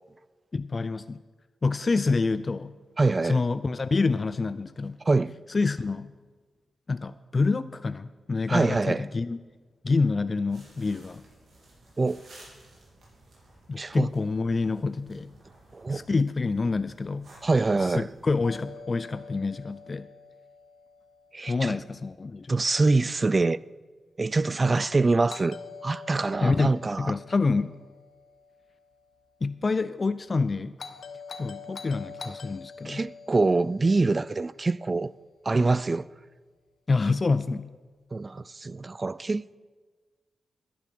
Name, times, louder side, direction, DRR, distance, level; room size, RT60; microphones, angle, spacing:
voice 1, 0.5-1.2 1.6-2.7 3.2-5.0 5.5-6.1 6.9-9.4 9.8-11.2 13.7-15.3 15.9-17.3 17.8-20.1 21.5-22.6 26.4-27.8 29.4-30.8 31.4-33.0 36.9-37.7, left 3 dB, 45° left, 0.4 m, -27 dB
voice 2, 3.0-3.4 5.0-5.3 8.5-9.0 12.0-12.2 13.8-14.1 15.7-16.1 17.4-18.1 21.3-21.8 22.5-23.6 24.2-25.6 25.8-27.1 32.8-35.1 35.5-36.1 38.1-39.6, right 3 dB, 40° right, 0.3 m, -25 dB
sound 1, 10.5-18.7, right 2 dB, 70° right, 3.6 m, -55 dB
Doorbell, 18.4-22.4 25.3-29.5 30.8-35.2, left 5 dB, 70° left, 0.9 m, -46 dB
10.0 x 10.0 x 6.1 m
supercardioid pair, 45°, 0 cm